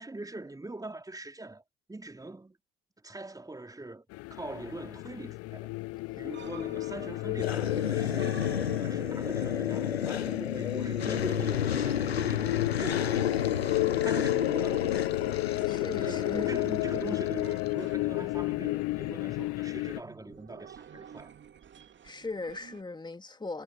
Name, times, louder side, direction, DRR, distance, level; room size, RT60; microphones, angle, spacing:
voice 1, 0.0-1.6 1.9-2.6 3.0-5.7 6.2-8.4 8.8-13.2 13.7-14.8 16.0-21.3, right 2 dB, 10° right, 3.6 m, -42 dB
sound 1, 4.1-20.0, left 22 dB, 50° left, 0.6 m, -32 dB
sound 2, 6.1-22.8, right 8 dB, 40° right, 2.6 m, -53 dB
sound 3, 7.4-17.7, left 8 dB, 90° left, 0.9 m, -32 dB
voice 2, 15.7-16.5 22.0-23.6, left 3 dB, 15° left, 2.9 m, -39 dB
figure-of-eight pair, 60°, 30 cm